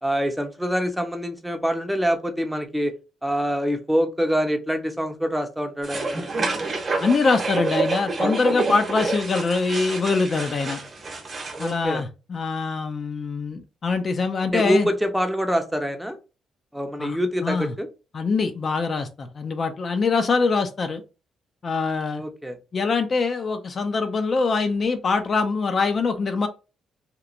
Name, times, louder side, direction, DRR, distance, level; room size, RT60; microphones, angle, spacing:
voice 1, 0.0-2.9 3.2-6.4 11.6-12.0 14.5-16.2 16.7-17.9 22.1-22.6, equal, 5° right, 6 dB, 0.5 m, -25 dB
sound 1, 5.8-11.7, right 3 dB, 40° right, 0.8 m, -28 dB
voice 2, 7.0-10.8 11.6-14.9 17.0-17.7 18.1-21.0 21.6-22.2 22.7-26.5, left 4 dB, 45° left, 7 dB, 0.4 m, -24 dB
2.9 x 2.1 x 2.4 m, 0.30 s
cardioid pair, 90°, 0 cm